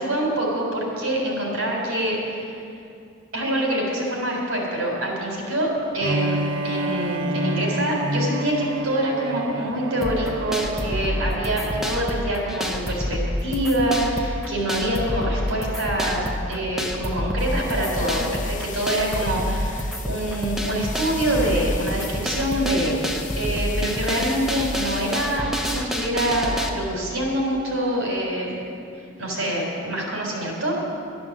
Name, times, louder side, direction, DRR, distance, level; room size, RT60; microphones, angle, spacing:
voice 1, 0.0-2.6 3.3-23.0 23.4-28.6 29.2-30.7, right 1 dB, 80° right, -1 dB, 3.8 m, -25 dB
Bowed string instrument, 6.0-12.0, right 1 dB, 55° right, 0.6 m, -29 dB
sound 1, 10.0-26.7, left 1 dB, ahead, 0.8 m, -28 dB
sound 2, 17.4-25.4, left 8 dB, 35° left, 0.8 m, -40 dB
11.5 x 11.5 x 7.3 m, 2.5 s
head